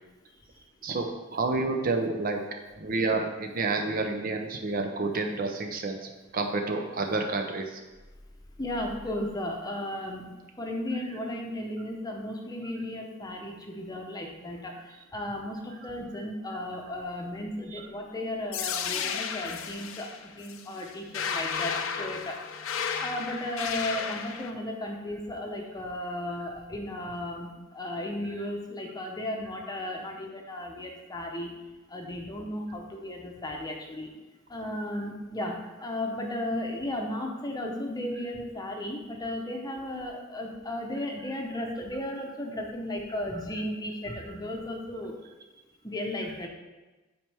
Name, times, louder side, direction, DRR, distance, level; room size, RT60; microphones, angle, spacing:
voice 1, 1.3-2.4 2.8-6.0 6.3-7.8 15.8-15.9 17.7-17.9, right 3 dB, 45° right, 3 dB, 0.6 m, -29 dB
voice 2, 8.6-22.4 23.0-31.5 31.9-34.1 34.5-45.2 45.8-46.5, left 1 dB, 20° left, 1 dB, 0.8 m, -35 dB
sound 1, 18.5-24.5, left 6 dB, 70° left, 0.5 m, -33 dB
9.1 x 4.5 x 3.4 m, 1.2 s
head